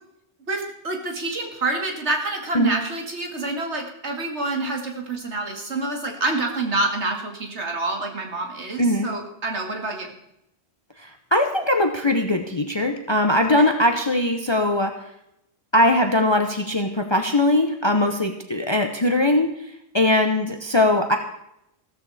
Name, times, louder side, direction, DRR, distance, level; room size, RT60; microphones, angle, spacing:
voice 1, 0.5-10.1 13.6-13.7, right 2 dB, 85° right, 2 dB, 2.6 m, -27 dB
voice 2, 8.8-9.1 11.0-15.0 15.7-19.5 19.9-21.2, left 1 dB, 25° left, 6 dB, 0.9 m, -20 dB
15.0 x 14.0 x 4.2 m, 0.79 s
omnidirectional pair, 1.1 m